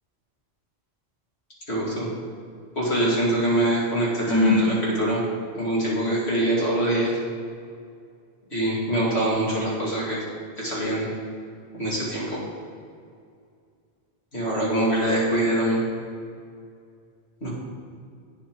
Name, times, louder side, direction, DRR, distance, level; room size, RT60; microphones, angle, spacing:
voice 1, 1.7-2.1 2.8-5.2 5.5-7.1 8.5-10.2 10.6-11.1 11.7-12.4 14.3-15.8 17.4-17.5, right 1 dB, 75° left, -6 dB, 2.6 m, -24 dB
Sigh, 4.1-4.7, left 1 dB, 25° left, 2.3 m, -21 dB
8.6 x 7.6 x 3.8 m, 2.3 s
omnidirectional pair, 1.1 m